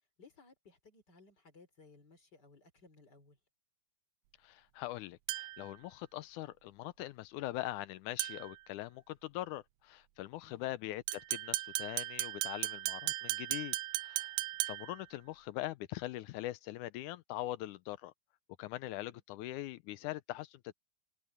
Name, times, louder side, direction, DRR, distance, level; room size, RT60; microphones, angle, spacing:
voice 1, 0.2-3.4 10.4-10.7, left 3 dB, 35° left, 3.4 m, -61 dB
voice 2, 4.4-14.3 14.6-18.1 18.6-20.7, left 15 dB, 85° left, 2.1 m, -42 dB
sound 1, 5.3-5.7 8.2-8.6 11.1-15.0, right 17 dB, 80° right, 1.5 m, -37 dB
omnidirectional pair, 3.6 m